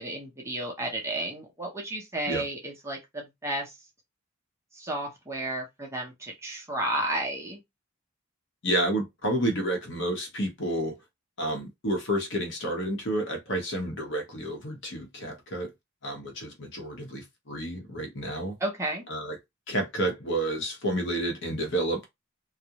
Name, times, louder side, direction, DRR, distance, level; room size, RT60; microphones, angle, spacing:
voice 1, 0.0-3.7 4.7-7.6 18.6-19.0, right 1 dB, 15° right, 0.6 m, -32 dB
voice 2, 8.6-10.9 11.4-15.7 16.0-18.5 19.1-19.4 19.7-22.0, right 1 dB, 55° left, 0.8 m, -30 dB
2.4 x 2.0 x 2.8 m
head